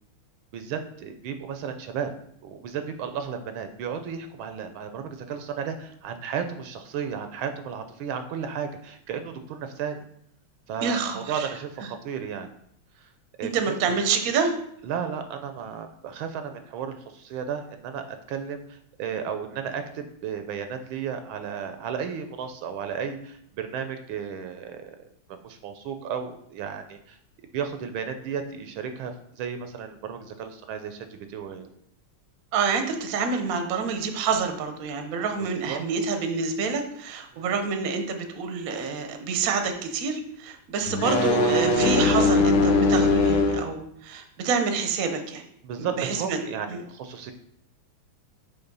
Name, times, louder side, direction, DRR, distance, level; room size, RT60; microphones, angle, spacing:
voice 1, 0.5-2.1 2.4-10.0 10.7-12.5 13.0-13.1 13.4-13.9 14.8-18.6 19.0-25.0 25.4-27.2 27.5-31.7 35.4-35.8 37.3-37.5 45.6-47.3, right 7 dB, 75° right, 7 dB, 1.4 m, -34 dB
voice 2, 10.8-11.5 13.4-14.5 32.5-45.4 45.8-46.4 46.7-46.8, right 5 dB, 60° right, 6 dB, 1.0 m, -27 dB
sound 1, 40.9-43.7, left 2 dB, 65° left, 1.3 m, -20 dB
5.9 x 3.6 x 5.4 m, 0.70 s
omnidirectional pair, 2.3 m